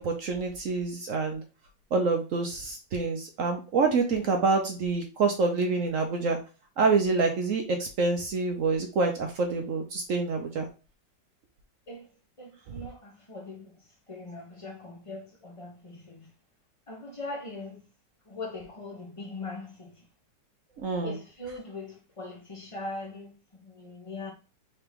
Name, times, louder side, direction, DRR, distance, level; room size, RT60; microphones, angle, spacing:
voice 1, 0.0-1.4 1.9-6.4 6.8-10.7 20.8-21.1, right 4 dB, 60° right, 0.9 m, -27 dB
voice 2, 12.4-16.3 16.9-17.8 18.2-20.1 21.0-24.3, left 2 dB, 25° left, 0.8 m, -41 dB
4.5 x 3.0 x 3.4 m
omnidirectional pair, 1.9 m